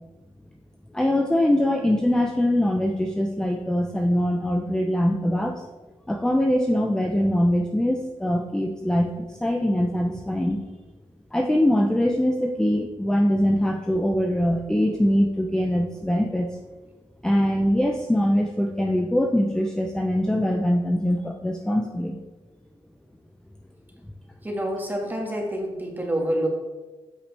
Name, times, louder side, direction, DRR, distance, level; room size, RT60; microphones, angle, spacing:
voice 1, 0.9-5.6 6.1-10.6 11.3-16.6 17.2-22.2, equal, 5° left, 2 dB, 0.6 m, -23 dB
voice 2, 24.4-26.5, right 1 dB, 15° right, 0 dB, 1.8 m, -27 dB
8.2 x 5.9 x 3.3 m, 1.2 s
cardioid pair, 75°, 11 cm